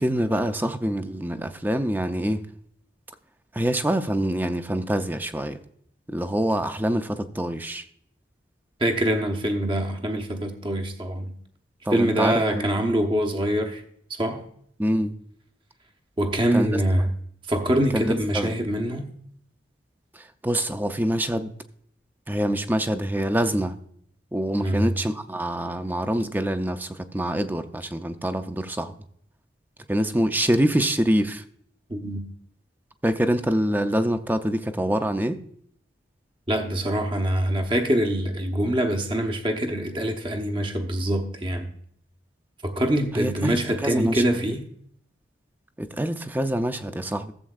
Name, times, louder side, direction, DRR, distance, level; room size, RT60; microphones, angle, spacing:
voice 1, 0.0-2.5 3.5-5.6 6.1-7.8 11.9-12.9 14.8-15.1 16.5-16.8 17.9-18.5 20.1-21.5 22.3-23.8 24.3-28.9 29.9-31.4 33.0-35.4 43.1-44.2 45.8-47.3, right 1 dB, 10° right, 0.5 m, -25 dB
voice 2, 8.8-11.3 11.9-13.8 14.2-14.4 16.2-17.1 17.5-19.1 24.6-24.9 31.9-32.3 36.5-41.7 42.6-44.6, right 1 dB, 25° right, 0.9 m, -24 dB
14.5 x 7.6 x 2.4 m
head